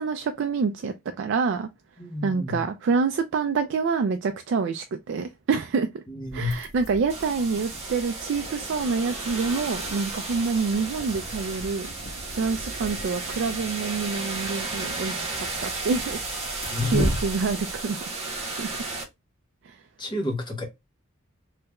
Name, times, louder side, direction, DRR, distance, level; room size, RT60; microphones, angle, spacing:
voice 1, 0.0-1.7 2.2-6.0 6.3-11.9 12.3-16.2 16.6-18.0 18.6-18.7 19.6-19.8, right 4 dB, 60° right, 0.3 m, -27 dB
voice 2, 2.0-2.6 6.1-6.5 16.7-17.1 20.0-20.6, left 2 dB, 25° left, 1.1 m, -29 dB
Loathsome peeling, 6.3-17.8, equal, 75° left, 1.5 m, -38 dB
sound 1, 7.1-19.0, right 3 dB, 30° right, 1.0 m, -34 dB
3.2 x 2.9 x 2.2 m
head